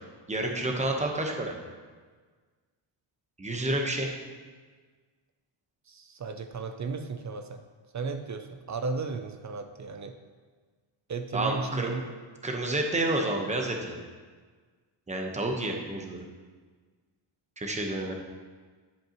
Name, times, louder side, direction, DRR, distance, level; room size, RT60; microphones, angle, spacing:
voice 1, 0.3-1.5 3.4-4.1 11.3-11.9 12.4-14.0 15.1-16.2 17.6-18.1, right 2 dB, 15° right, 2 dB, 1.0 m, -29 dB
voice 2, 5.9-7.6 7.9-10.2 11.1-12.1, right 4 dB, 40° right, 7 dB, 0.5 m, -34 dB
10.5 x 7.7 x 3.0 m, 1.5 s
cardioid pair, 120°, 49 cm